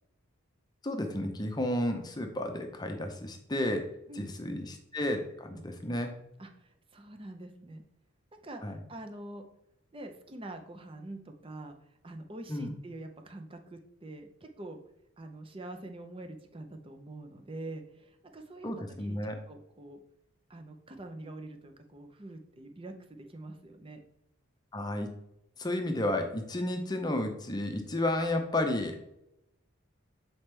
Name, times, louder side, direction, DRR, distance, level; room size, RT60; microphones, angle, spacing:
voice 1, 0.8-3.8 4.1-4.7 4.9-6.1 8.6-8.8 12.5-12.7 18.6-19.4 24.7-25.1 25.6-29.0, left 1 dB, 20° left, 5 dB, 0.7 m, -32 dB
voice 2, 4.1-4.6 5.5-5.6 6.4-7.8 8.3-9.4 9.9-11.8 12.0-14.8 15.2-18.7 19.0-19.2 19.5-20.0 20.5-24.0, right 2 dB, 25° right, 5 dB, 0.6 m, -45 dB
7.7 x 4.3 x 3.3 m, 0.83 s
head